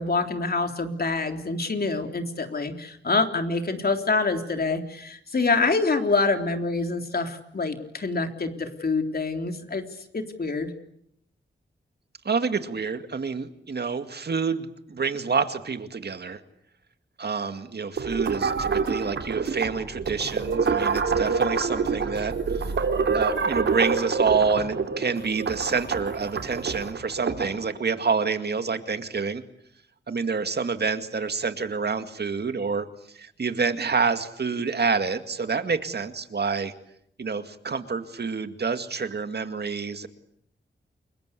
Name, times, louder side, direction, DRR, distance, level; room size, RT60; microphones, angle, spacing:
voice 1, 0.0-9.8 10.1-10.7, left 3 dB, 55° left, 5 dB, 3.7 m, -26 dB
voice 2, 12.2-16.4 17.2-22.7 23.1-29.4 30.1-36.7 37.2-40.1, right 5 dB, 60° right, 9 dB, 2.2 m, -28 dB
sound 1, 18.0-27.6, right 5 dB, 85° right, 3.1 m, -27 dB
29.5 x 23.0 x 8.4 m, 0.72 s
cardioid pair, 75°, 19 cm